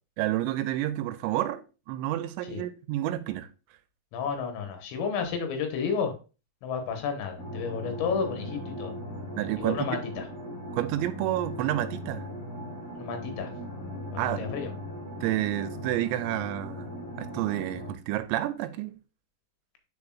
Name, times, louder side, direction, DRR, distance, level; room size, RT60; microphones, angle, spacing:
voice 1, 0.2-3.5 9.3-10.0 10.7-12.3 14.2-14.5 15.2-16.9 17.2-19.0, right 14 dB, 85° right, 2.7 m, -30 dB
voice 2, 4.1-6.1 6.6-8.9 9.6-10.3 12.9-13.5 14.2-14.7, left 6 dB, 80° left, 3.4 m, -31 dB
sound 1, 7.4-17.9, left 1 dB, 65° left, 0.8 m, -39 dB
9.5 x 4.3 x 2.3 m
omnidirectional pair, 5.2 m